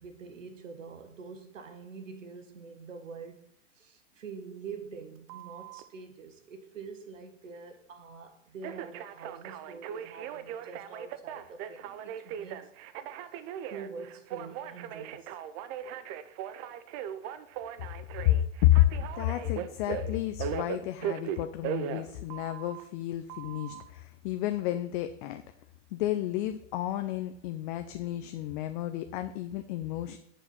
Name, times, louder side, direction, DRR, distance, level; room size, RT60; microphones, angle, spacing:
voice 1, 0.0-3.4 3.7-12.7 13.7-15.4, right 5 dB, 85° right, 1.4 m, -45 dB
Telephone, 5.3-5.8 8.6-22.8 23.3-23.8, right 10 dB, 25° right, 0.3 m, -38 dB
voice 2, 19.2-25.4 25.9-30.2, left 14 dB, 45° left, 0.6 m, -30 dB
7.2 x 4.3 x 6.8 m
hypercardioid pair, 125°, 37 cm